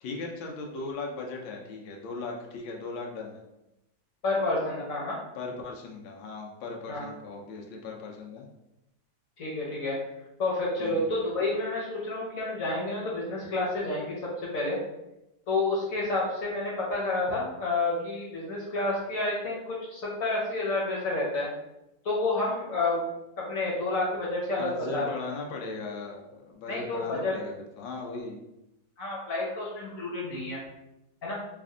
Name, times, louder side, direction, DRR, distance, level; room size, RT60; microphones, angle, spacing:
voice 1, 0.0-3.4 5.3-8.5 10.8-11.0 24.6-28.4, left 3 dB, 85° left, 0 dB, 1.4 m, -38 dB
voice 2, 4.2-5.2 6.9-7.1 9.4-10.0 10.4-14.8 15.5-21.5 22.0-23.1 23.4-25.1 26.7-27.3 29.0-30.6 31.2-31.4, left 2 dB, 50° left, -5 dB, 1.2 m, -29 dB
3.3 x 2.5 x 3.7 m, 0.90 s
omnidirectional pair, 2.1 m